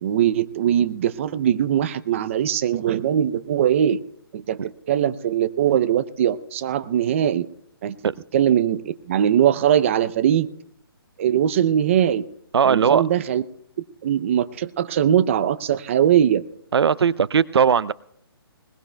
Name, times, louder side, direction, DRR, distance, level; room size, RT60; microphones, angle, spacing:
voice 1, 0.0-4.0 4.3-4.6 4.9-7.5 7.8-7.9 8.3-8.8 9.1-10.5 11.2-12.2 12.6-13.4 14.0-16.4, right 10 dB, 30° right, 0.5 m, -20 dB
voice 2, 12.5-13.0 16.7-17.9, right 7 dB, 85° right, 0.5 m, -18 dB
21.0 x 20.5 x 2.3 m
hypercardioid pair, 160°, 13 cm